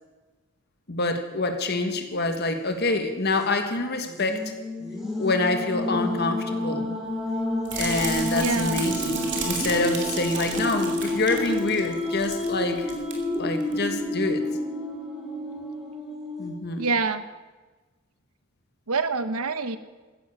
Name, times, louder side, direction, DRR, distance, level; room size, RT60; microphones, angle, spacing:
voice 1, 0.9-4.4 5.2-6.9 7.7-12.9 13.4-14.4 16.4-16.8, left 2 dB, 45° left, 6 dB, 1.5 m, -26 dB
sound 1, 2.0-2.6 3.0-3.1 4.1-16.5, left 1 dB, ahead, 3.3 m, -30 dB
sound 2, 7.6-12.5 12.8-13.1 13.6-13.7, right 4 dB, 55° right, 2.7 m, -33 dB
voice 2, 8.3-8.8 16.8-17.2 18.9-19.8, right 4 dB, 80° right, 12 dB, 0.9 m, -26 dB
15.0 x 10.5 x 7.0 m, 1.3 s
head